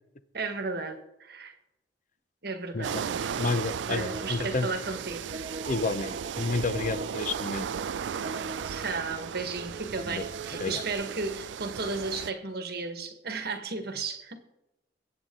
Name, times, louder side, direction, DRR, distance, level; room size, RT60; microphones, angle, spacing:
voice 1, 0.3-1.5 2.4-3.2 3.9-5.5 8.6-14.4, right 3 dB, 60° right, 1.4 m, -34 dB
sound 1, 2.8-12.3, right 7 dB, 85° right, 0.4 m, -36 dB
sound 2, 3.1-11.0, right 3 dB, 35° right, 0.5 m, -43 dB
voice 2, 3.4-4.7 5.7-7.7 10.1-10.2 10.6-10.8, left 3 dB, 45° left, 0.7 m, -30 dB
22.5 x 8.6 x 3.7 m
head